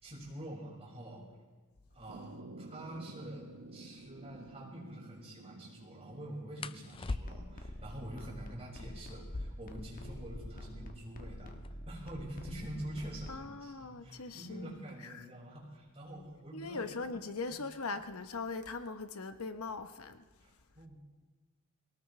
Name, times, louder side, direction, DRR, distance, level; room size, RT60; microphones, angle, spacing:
voice 1, 0.0-1.2 1.9-11.5 11.9-16.9 17.5-17.6 20.4-21.0, right 1 dB, 30° right, 5.8 m, -46 dB
sound 1, 2.1-9.9, right 2 dB, 90° right, 1.1 m, -53 dB
sound 2, 3.9-4.1 6.6-7.7 9.1-10.8 11.1-11.2 11.4-12.0 12.6-15.2 16.2-16.5 16.9-17.3 17.7-18.4, left 3 dB, 25° left, 0.4 m, -44 dB
sound 3, 7.0-13.4, equal, 40° left, 1.4 m, -47 dB
voice 2, 13.3-14.7 15.0-15.2 16.5-20.2, left 3 dB, 80° left, 1.0 m, -40 dB
23.0 x 18.5 x 3.3 m
head